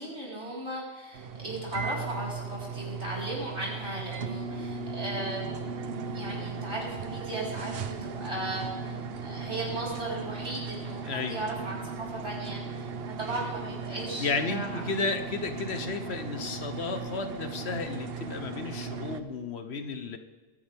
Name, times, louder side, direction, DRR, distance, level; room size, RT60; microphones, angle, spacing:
voice 1, 0.0-5.4 6.1-12.9 13.2-14.8, right 1 dB, 85° right, -5 dB, 4.7 m, -36 dB
sound 1, 1.1-19.2, right 4 dB, 60° right, 1.0 m, -37 dB
voice 2, 11.0-11.4 14.2-20.2, left 4 dB, 70° left, 8 dB, 1.3 m, -33 dB
22.5 x 10.0 x 3.5 m, 1.4 s
omnidirectional pair, 1.1 m